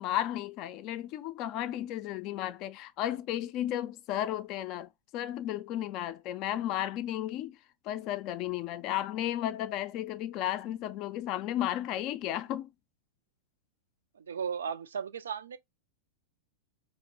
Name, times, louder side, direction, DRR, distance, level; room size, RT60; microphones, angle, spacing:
voice 1, 0.0-7.6 7.8-12.7, left 12 dB, 40° left, 0.3 m, -34 dB
voice 2, 14.2-15.6, right 7 dB, 70° right, 0.3 m, -35 dB
2.8 x 2.0 x 3.9 m
figure-of-eight pair, 95°, 0 cm